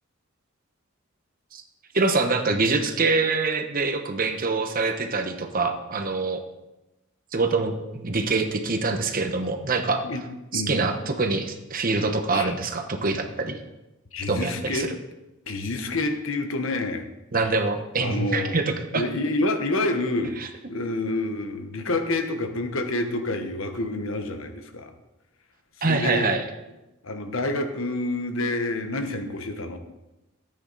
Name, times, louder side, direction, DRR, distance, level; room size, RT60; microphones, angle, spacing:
voice 1, 1.9-6.4 7.3-10.0 10.5-13.6 14.3-15.0 17.3-19.0 20.4-20.5 25.8-26.4, right 3 dB, 45° right, 6 dB, 1.1 m, -25 dB
voice 2, 10.5-10.8 12.3-12.5 14.1-14.9 15.5-17.0 17.4-17.5 18.0-18.6 18.9-20.3 20.7-24.9 25.8-26.3 27.0-29.8, left 2 dB, 70° left, 6 dB, 1.2 m, -28 dB
13.5 x 8.9 x 4.1 m, 0.98 s
head